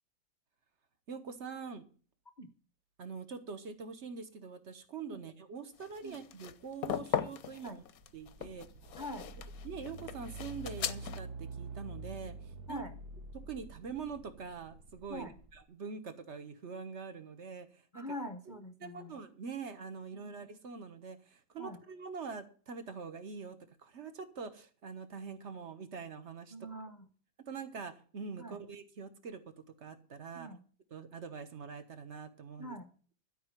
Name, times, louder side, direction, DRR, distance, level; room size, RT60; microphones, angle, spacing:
voice 1, 1.1-1.9 3.0-7.8 8.1-8.7 9.6-12.8 13.5-18.0 18.5-26.5 27.5-29.4 29.8-30.5 30.9-32.8, right 5 dB, 40° right, 10 dB, 1.4 m, -44 dB
sound 1, 5.8-11.2, left 9 dB, 60° left, 1.0 m, -38 dB
sound 2, 7.6-15.6, right 3 dB, 60° right, 1.5 m, -47 dB
voice 2, 9.0-9.3 12.7-12.9 15.1-15.3 17.9-19.2 20.1-20.3 21.6-21.8 26.5-27.1 28.4-28.6 30.3-30.6 32.6-32.9, equal, 45° left, 8 dB, 0.6 m, -44 dB
12.5 x 5.6 x 9.1 m, 0.41 s
omnidirectional pair, 2.0 m